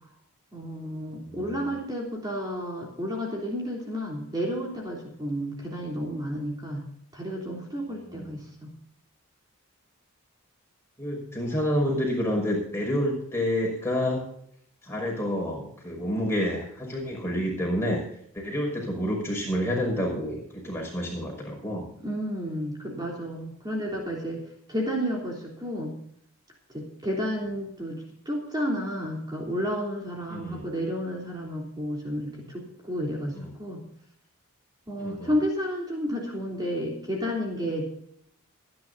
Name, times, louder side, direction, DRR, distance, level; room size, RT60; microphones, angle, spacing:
voice 1, 0.5-6.8 7.1-8.7 22.0-24.4 24.7-25.9 26.7-28.0 28.2-33.8 34.9-37.9, equal, 20° right, -2 dB, 3.3 m, -31 dB
voice 2, 1.3-1.7 8.1-8.3 11.0-14.3 14.8-18.0 18.3-21.9 30.3-30.7 33.3-33.5 35.0-35.3, equal, 10° left, -1 dB, 5.8 m, -29 dB
25.0 x 10.5 x 2.7 m, 0.69 s
head